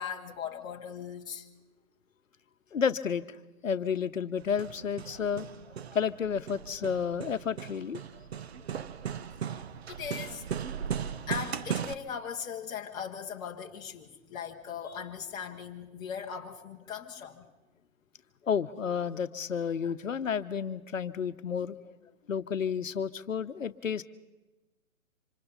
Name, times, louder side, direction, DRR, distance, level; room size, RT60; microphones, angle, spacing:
voice 1, 0.0-1.5 9.5-9.6 9.9-10.5 10.9-17.5, left 7 dB, 10° left, -1 dB, 1.1 m, -39 dB
voice 2, 2.7-3.4 3.6-5.5 5.9-8.0 18.4-22.0 22.3-24.0, left 7 dB, 70° left, 12 dB, 0.9 m, -31 dB
Hammer, 4.4-11.9, right 8 dB, 50° right, 0.8 m, -37 dB
26.5 x 25.5 x 4.1 m, 1.1 s
figure-of-eight pair, 140°, 41 cm